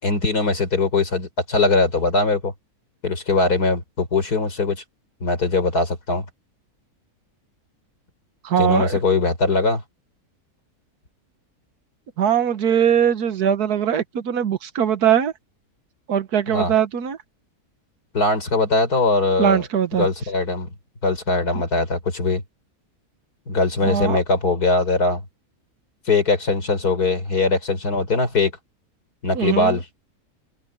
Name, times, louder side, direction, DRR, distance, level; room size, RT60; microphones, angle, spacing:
voice 1, 0.0-2.5 3.0-4.8 5.2-6.2 8.6-9.8 16.5-16.7 18.1-19.6 19.9-20.7 21.0-22.4 23.5-25.2 26.1-28.5 29.2-29.8, left 3 dB, 85° left, 4.7 m, -21 dB
voice 2, 8.4-9.0 12.2-15.3 16.1-17.2 19.4-20.1 23.8-24.2 29.3-29.8, right 9 dB, 85° right, 1.7 m, -21 dB
omnidirectional pair, 1.6 m